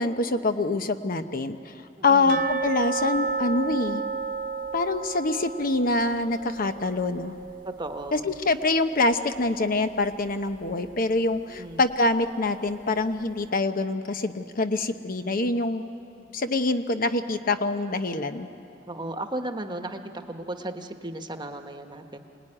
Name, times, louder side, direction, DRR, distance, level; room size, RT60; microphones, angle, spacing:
voice 1, 0.0-1.7 2.0-4.0 4.7-7.4 8.1-15.8 16.3-18.5, left 2 dB, 50° left, 8 dB, 0.9 m, -25 dB
voice 2, 2.0-2.4 7.6-8.3 11.5-11.8 18.9-22.2, right 1 dB, 25° right, 6 dB, 1.2 m, -35 dB
sound 1, 2.3-9.1 9.4-9.5 10.0-10.1 10.7-10.8, right 4 dB, 50° right, 0.9 m, -32 dB
26.0 x 19.0 x 9.9 m, 2.9 s
head